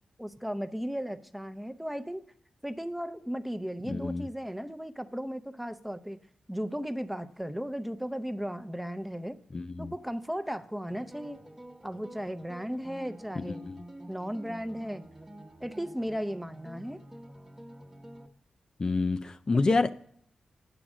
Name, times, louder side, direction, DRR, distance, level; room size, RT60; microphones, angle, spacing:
voice 1, 0.2-2.2 2.6-6.2 6.5-9.4 9.8-11.4 11.8-13.7 14.1-15.0 15.6-17.0 19.5-19.6, equal, 5° right, 10 dB, 0.6 m, -36 dB
voice 2, 3.8-4.3 9.5-9.9 13.4-13.8 18.8-19.9, left 3 dB, 40° left, 8 dB, 0.4 m, -28 dB
sound 1, 10.9-18.3, right 1 dB, 20° right, 1.0 m, -48 dB
8.7 x 6.1 x 6.0 m, 0.68 s
cardioid pair, 50°, 2 cm